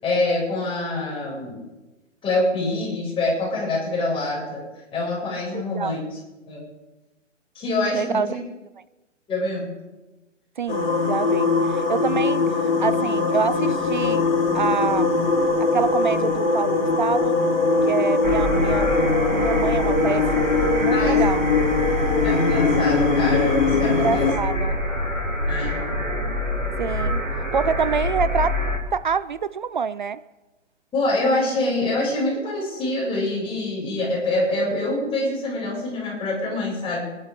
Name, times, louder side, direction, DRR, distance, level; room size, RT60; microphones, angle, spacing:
voice 1, 0.0-1.6 2.2-4.6 4.9-6.2 6.5-6.6 7.5-8.4 9.3-9.7 20.9-21.2 22.2-24.3 25.5-25.8 30.9-37.1, left 2 dB, 15° left, 6.8 m, -25 dB
voice 2, 5.5-6.0 7.9-8.4 10.6-14.3 14.5-15.2 15.6-17.4 17.8-18.9 19.3-20.5 20.8-21.5 23.7-24.8 26.8-28.5 28.9-30.2, right 6 dB, 40° right, 0.4 m, -26 dB
sound 1, 10.7-24.3, left 3 dB, 50° left, 4.2 m, -21 dB
sound 2, 18.2-28.8, left 1 dB, 85° right, 3.3 m, -26 dB
25.5 x 11.5 x 3.7 m
figure-of-eight pair, 130°, 38 cm